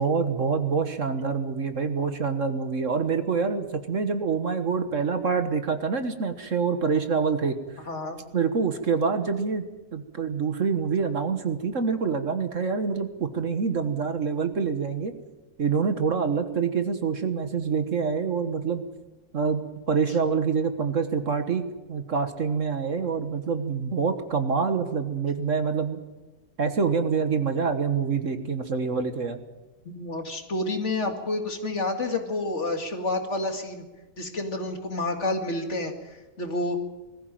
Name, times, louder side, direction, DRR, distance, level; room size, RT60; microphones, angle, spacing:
voice 1, 0.0-7.6 8.3-9.6 9.9-15.1 15.6-18.8 19.3-21.6 21.9-26.0 26.6-29.4, right 5 dB, 50° right, 9 dB, 1.7 m, -26 dB
voice 2, 7.9-8.2 29.9-33.8 34.2-35.9 36.4-36.8, left 2 dB, 45° left, 5 dB, 2.4 m, -29 dB
20.5 x 14.5 x 9.1 m, 1.1 s
omnidirectional pair, 1.7 m